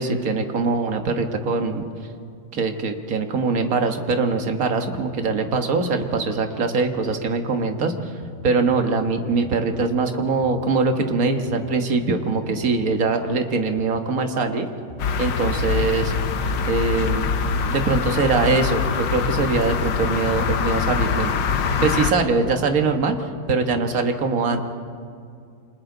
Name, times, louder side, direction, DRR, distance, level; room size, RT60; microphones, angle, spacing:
voice 1, 0.0-1.8 2.5-8.1 8.4-14.7 15.2-16.1 16.6-17.3 17.7-21.3 21.8-24.6, right 4 dB, 50° right, 5 dB, 1.8 m, -22 dB
sound 1, 4.9-5.0 6.0-6.1 7.1-7.2 8.2-8.4 9.3-9.5 10.4-10.6 11.5-11.7 12.6-12.8 13.8-14.0 14.9-15.1 16.1-16.3 17.2-17.4 18.3-18.5 19.4-19.6 20.5-20.7, left 2 dB, 30° left, 2.6 m, -43 dB
sound 2, 15.0-22.1, left 6 dB, 75° left, 1.7 m, -24 dB
29.0 x 26.0 x 3.9 m, 2.3 s
omnidirectional pair, 2.0 m